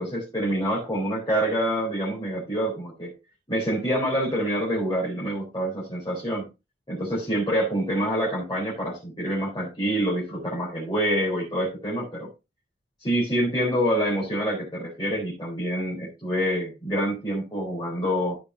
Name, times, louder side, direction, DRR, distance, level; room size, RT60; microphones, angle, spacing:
voice 1, 0.0-3.1 3.5-6.5 6.9-12.3 13.0-18.4, equal, 25° left, -6 dB, 4.0 m, -26 dB
14.5 x 5.4 x 2.8 m, 0.26 s
head